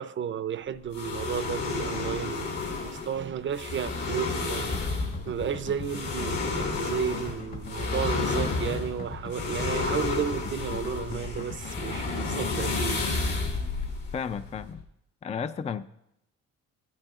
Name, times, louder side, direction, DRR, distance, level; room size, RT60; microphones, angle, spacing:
voice 1, 0.0-2.5 2.8-13.1, right 8 dB, 40° right, 0.6 m, -33 dB
sound 1, 0.9-14.8, left 3 dB, 70° left, 2.9 m, -31 dB
sound 2, 4.5-13.0, left 3 dB, 45° left, 1.8 m, -40 dB
voice 2, 14.1-14.8 15.2-15.9, left 6 dB, 20° left, 0.4 m, -33 dB
15.0 x 12.0 x 2.4 m
cardioid pair, 90°, 30 cm